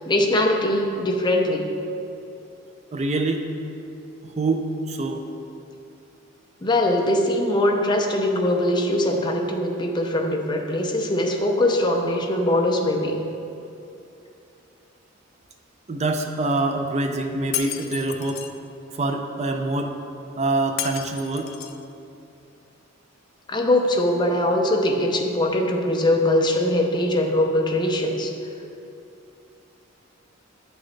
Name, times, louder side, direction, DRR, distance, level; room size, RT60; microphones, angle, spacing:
voice 1, 0.1-1.7 6.6-13.2 23.5-28.3, left 1 dB, 20° left, 2 dB, 0.6 m, -22 dB
voice 2, 2.9-3.4 4.2-5.2 15.9-18.5 18.9-20.0 20.4-21.5, right 2 dB, 35° right, 5 dB, 0.4 m, -25 dB
Shatter, 17.5-18.5 20.8-21.8, left 11 dB, 80° left, 0.4 m, -32 dB
9.6 x 6.2 x 3.2 m, 2.7 s
head